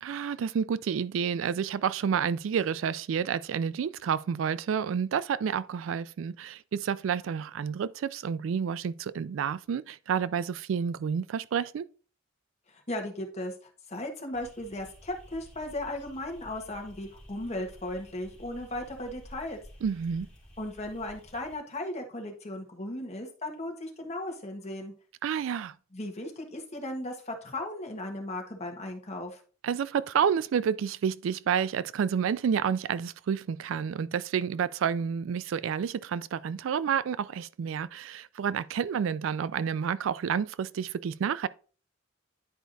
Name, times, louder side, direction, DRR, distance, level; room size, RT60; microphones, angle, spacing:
voice 1, 0.0-11.9 19.8-20.3 25.2-25.7 29.6-41.5, right 7 dB, 75° right, 0.3 m, -29 dB
voice 2, 12.7-19.6 20.6-24.9 25.9-29.4, left 1 dB, 35° left, 1.3 m, -36 dB
sound 1, 14.3-21.6, equal, 5° left, 2.3 m, -52 dB
10.0 x 4.6 x 2.6 m
head